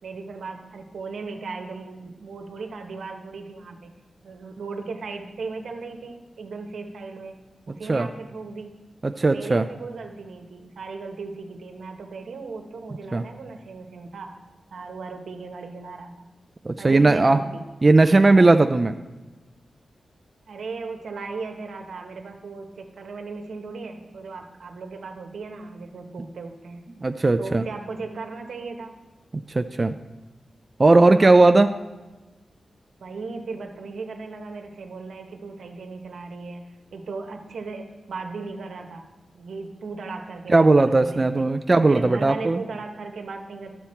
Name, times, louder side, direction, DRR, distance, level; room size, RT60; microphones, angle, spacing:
voice 1, 0.0-3.9 4.2-7.4 7.7-8.7 9.3-14.3 14.7-16.2 16.8-17.6 20.5-26.8 27.4-28.9 31.1-31.5 33.0-39.0 39.3-41.4 41.9-43.7, right 4 dB, 85° right, 4 dB, 1.1 m, -37 dB
voice 2, 9.0-9.7 13.1-13.2 16.7-17.4 17.8-18.9 27.0-27.6 29.5-29.9 30.8-31.7 40.5-42.6, right 2 dB, 30° right, 8 dB, 0.3 m, -17 dB
11.5 x 7.0 x 4.4 m, 1.2 s
wide cardioid pair, 110°, 0 cm